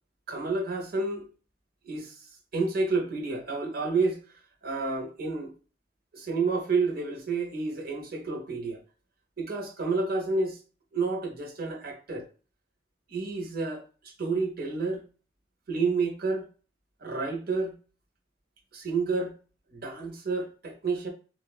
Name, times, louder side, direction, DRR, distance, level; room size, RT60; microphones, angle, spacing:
voice 1, 0.3-1.2 1.8-2.2 2.5-4.2 4.6-5.5 6.1-8.8 9.4-10.6 10.9-12.2 13.1-13.8 14.2-15.0 15.7-16.5 17.0-17.8 18.7-19.3 19.7-21.1, right 3 dB, 55° right, 0.7 m, -29 dB
4.2 x 2.0 x 2.3 m
head